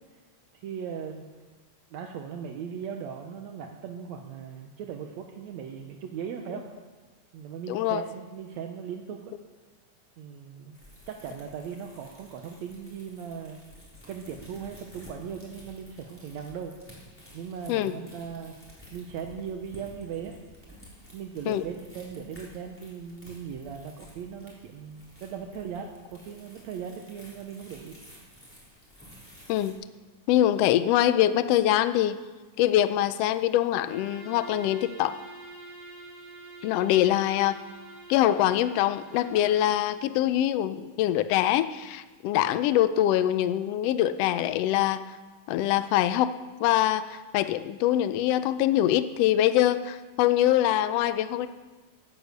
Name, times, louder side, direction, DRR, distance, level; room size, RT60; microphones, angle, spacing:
voice 1, 0.5-1.3 1.9-6.7 7.3-9.3 10.2-10.8 11.1-13.6 14.1-16.7 17.3-18.5 18.9-20.4 21.1-28.0, right 7 dB, 70° right, 4 dB, 2.0 m, -38 dB
voice 2, 7.7-8.0 17.7-17.9 21.5-21.6 29.5-29.7 30.3-32.2 32.6-35.2 36.6-37.6 38.1-45.0 45.5-46.3 46.6-51.5, left 12 dB, 90° left, 12 dB, 1.4 m, -24 dB
sound 1, 10.7-29.7, equal, 5° left, 3.9 m, -52 dB
Bowed string instrument, 33.8-40.0, right 3 dB, 30° right, 2.6 m, -46 dB
16.5 x 9.7 x 6.6 m, 1.3 s
omnidirectional pair, 3.5 m